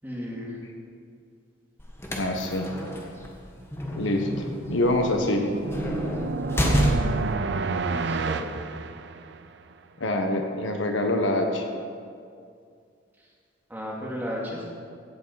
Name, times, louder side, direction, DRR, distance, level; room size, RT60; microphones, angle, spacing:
voice 1, 0.0-0.6 7.9-8.5 13.7-14.7, equal, 10° right, -4 dB, 2.6 m, -34 dB
sound 1, 1.8-7.4, equal, 15° left, 1.4 m, -29 dB
voice 2, 2.1-2.7 3.9-5.5 10.0-11.7, left 1 dB, 80° left, 3 dB, 1.4 m, -25 dB
sound 2, 4.6-9.6, right 4 dB, 60° right, 0.5 m, -30 dB
16.5 x 7.6 x 5.9 m, 2.3 s
head